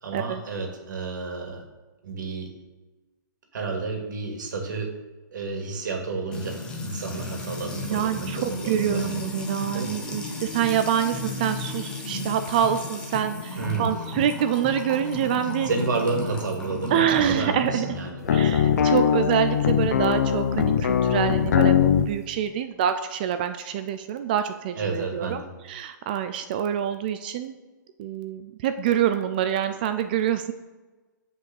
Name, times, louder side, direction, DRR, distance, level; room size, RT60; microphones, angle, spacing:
voice 1, 0.0-1.6 2.0-2.5 3.5-4.9 5.3-9.1 9.7-9.9 13.6-13.9 15.4-18.5 24.8-25.5, right 4 dB, 65° right, 2 dB, 2.4 m, -31 dB
Music / Water tap faucet / Trickle dribble, 6.3-18.1, left 2 dB, 10° left, 0.9 m, -34 dB
voice 2, 7.8-15.7 16.9-17.9 18.3-25.4 25.7-27.6 28.0-30.5, right 9 dB, 25° right, 9 dB, 0.4 m, -26 dB
sound 1, 18.2-22.1, left 8 dB, 55° left, 0.6 m, -21 dB
6.2 x 5.5 x 7.0 m, 1.2 s
hypercardioid pair, 165°, 11 cm